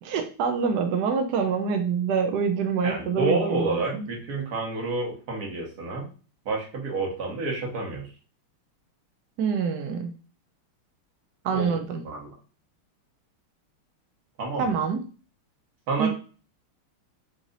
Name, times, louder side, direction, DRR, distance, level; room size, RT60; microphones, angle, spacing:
voice 1, 0.0-4.0 9.4-10.1 11.4-12.0 14.6-15.0 16.0-16.1, right 6 dB, 75° right, 5 dB, 0.9 m, -26 dB
voice 2, 2.8-6.1 6.4-8.1 11.5-11.7 12.0-12.3 14.4-14.7 15.9-16.1, right 3 dB, 50° right, -1 dB, 1.7 m, -29 dB
4.0 x 3.1 x 3.8 m, 0.37 s
omnidirectional pair, 2.4 m